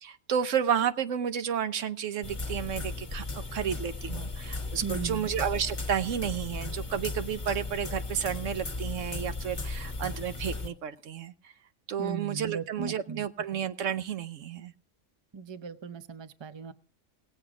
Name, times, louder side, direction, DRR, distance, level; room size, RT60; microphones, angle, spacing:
voice 1, 0.0-11.3 11.9-14.7, right 8 dB, 80° right, 10 dB, 1.2 m, -31 dB
sound 1, 2.2-10.7, left 3 dB, 25° left, 1.1 m, -36 dB
voice 2, 4.8-5.3 12.0-13.2 13.5-13.6 15.3-16.7, right 6 dB, 30° right, 12 dB, 0.5 m, -37 dB
18.0 x 7.8 x 4.9 m, 0.43 s
omnidirectional pair, 1.3 m